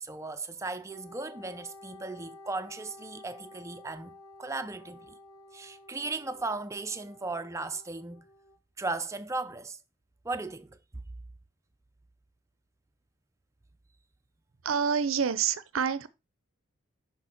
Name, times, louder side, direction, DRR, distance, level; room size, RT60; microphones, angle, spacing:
voice 1, 0.0-5.2 5.5-8.3 8.8-9.8 10.2-10.8, right 3 dB, 15° right, 0.5 m, -36 dB
Wind instrument woodwind instrument, 0.9-8.6, left 2 dB, 85° left, 1.2 m, -52 dB
voice 2, 14.6-16.1, right 7 dB, 70° right, 0.6 m, -27 dB
6.4 x 5.3 x 4.3 m
head